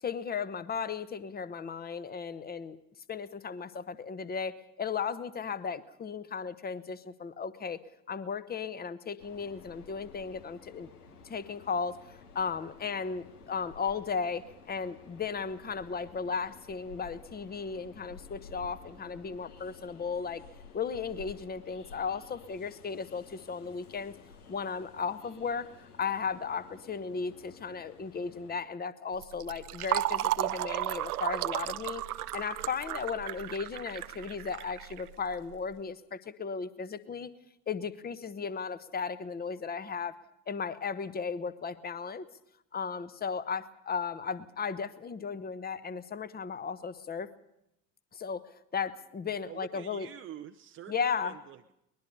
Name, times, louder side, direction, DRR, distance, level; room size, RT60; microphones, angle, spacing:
voice 1, 0.0-2.8 3.1-7.8 8.1-10.9 11.2-20.4 20.7-24.1 24.5-32.0 32.3-37.3 37.7-40.2 40.5-42.3 42.7-47.3 48.1-50.1 50.9-51.4, left 5 dB, 20° left, 14 dB, 1.1 m, -35 dB
Train, 9.2-28.7, left 5 dB, 70° left, 1.6 m, -53 dB
Fill (with liquid), 29.2-35.6, right 14 dB, 65° right, 0.8 m, -34 dB
voice 2, 49.4-51.7, right 10 dB, 25° right, 5 dB, 0.7 m, -47 dB
23.0 x 20.5 x 5.5 m, 0.81 s
figure-of-eight pair, 70°, 47 cm